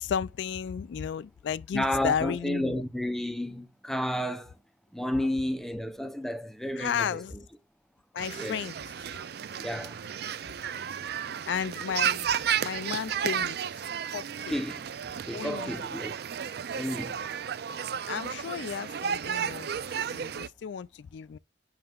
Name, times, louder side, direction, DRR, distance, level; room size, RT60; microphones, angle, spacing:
voice 1, 0.0-2.8 6.8-7.4 8.1-8.7 11.5-12.3 12.6-13.6 14.1-14.5 15.3-15.8 18.1-19.7 20.1-21.4, left 7 dB, 70° left, 0.3 m, -33 dB
voice 2, 1.7-4.6 4.9-7.1 8.3-8.6 9.6-10.0 14.5-14.8 15.3-16.1 16.7-17.2, left 1 dB, ahead, 0.7 m, -31 dB
sound 1, 8.2-20.5, right 8 dB, 55° right, 0.4 m, -33 dB
7.6 x 6.7 x 2.3 m
head